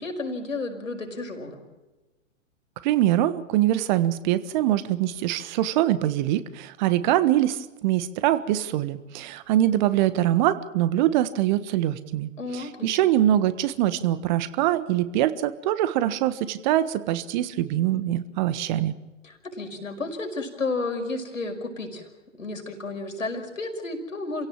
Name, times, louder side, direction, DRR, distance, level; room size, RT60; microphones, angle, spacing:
voice 1, 0.0-1.6 12.4-13.0 19.2-22.1 22.4-24.5, left 3 dB, 80° left, 3 dB, 5.5 m, -32 dB
voice 2, 2.8-18.9, right 13 dB, 35° right, 13 dB, 1.4 m, -23 dB
28.5 x 17.0 x 7.5 m, 1.1 s
figure-of-eight pair, 110°, 39 cm